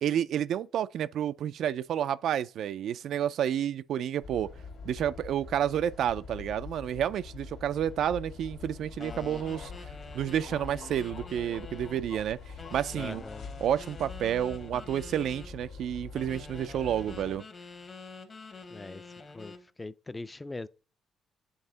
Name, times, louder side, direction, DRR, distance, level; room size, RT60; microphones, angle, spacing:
voice 1, 0.0-4.5 4.9-9.7 10.1-12.4 12.7-13.2 13.6-17.4, right 10 dB, 70° right, 0.3 m, -30 dB
sound 1, 4.2-17.4, left 4 dB, 80° left, 1.7 m, -45 dB
sound 2, 9.0-12.1 12.6-15.5 16.1-19.7, left 4 dB, 40° left, 1.1 m, -47 dB
voice 2, 12.9-13.5 18.7-19.0 19.3-20.7, left 2 dB, 20° left, 0.4 m, -41 dB
8.7 x 3.6 x 3.8 m
cardioid pair, 90°, 0 cm